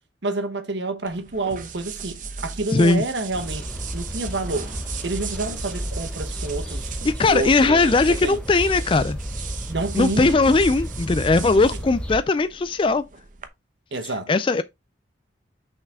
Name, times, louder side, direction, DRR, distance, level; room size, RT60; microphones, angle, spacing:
voice 1, 0.2-3.6 3.9-4.8 5.0-7.0 7.2-8.4 9.7-10.3 11.5-11.6 13.9-14.3, right 2 dB, 65° right, 1.3 m, -28 dB
sound 1, 1.0-13.5, right 7 dB, 45° right, 0.9 m, -38 dB
voice 2, 2.7-3.0 7.1-9.2 9.9-13.0 14.0-14.6, left 3 dB, 25° left, 0.3 m, -19 dB
sound 2, 3.3-12.2, equal, 5° left, 1.3 m, -32 dB
6.6 x 5.7 x 3.6 m
head